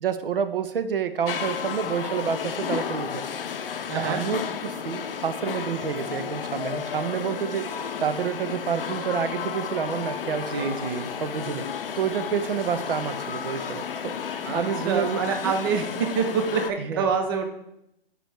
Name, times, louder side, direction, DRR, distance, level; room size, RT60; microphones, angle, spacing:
voice 1, 0.0-3.2 4.0-7.7 8.0-10.8 11.2-11.7 12.0-15.5 16.8-17.1, right 7 dB, 70° right, 11 dB, 0.6 m, -29 dB
sound 1, 1.3-16.7, left 7 dB, 65° left, 0.6 m, -32 dB
voice 2, 3.9-4.2 10.3-11.1 14.4-17.5, right 5 dB, 25° right, 5 dB, 0.4 m, -26 dB
4.9 x 4.8 x 4.3 m, 0.80 s
hypercardioid pair, 140°, 30 cm